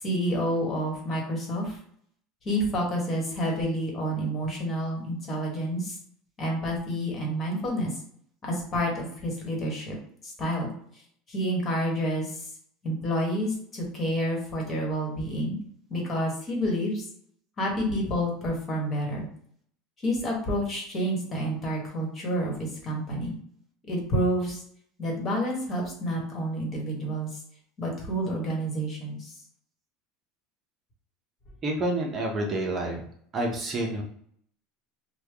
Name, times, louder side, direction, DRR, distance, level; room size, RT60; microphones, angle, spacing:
voice 1, 0.0-1.8 2.4-6.0 6.4-7.9 8.4-9.9 10.2-10.7 11.3-12.5 12.8-15.6 15.9-17.0 17.6-19.3 20.0-23.3 23.9-24.6 25.0-27.3 27.8-29.3, equal, 30° left, -1 dB, 1.3 m, -29 dB
voice 2, 31.6-33.0 33.3-34.0, right 1 dB, 30° right, 0 dB, 0.7 m, -28 dB
3.3 x 2.2 x 3.4 m, 0.63 s
supercardioid pair, 120°, 0 cm